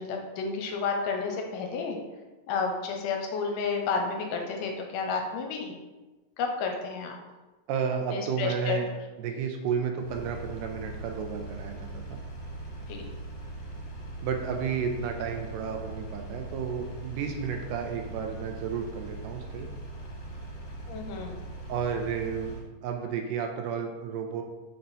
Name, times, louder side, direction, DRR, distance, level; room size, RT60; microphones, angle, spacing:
voice 1, 0.0-2.0 2.5-5.7 6.4-7.2 8.1-8.8 12.9-13.1 20.9-21.4, left 4 dB, 80° left, 2 dB, 2.1 m, -31 dB
voice 2, 7.7-8.9 9.2-12.2 14.2-19.7 21.7-22.6 22.8-24.4, right 6 dB, 80° right, 3 dB, 2.1 m, -32 dB
Engine, 10.0-22.6, right 2 dB, 60° left, 2.0 m, -40 dB
5.4 x 4.4 x 4.0 m, 1.2 s
omnidirectional pair, 4.0 m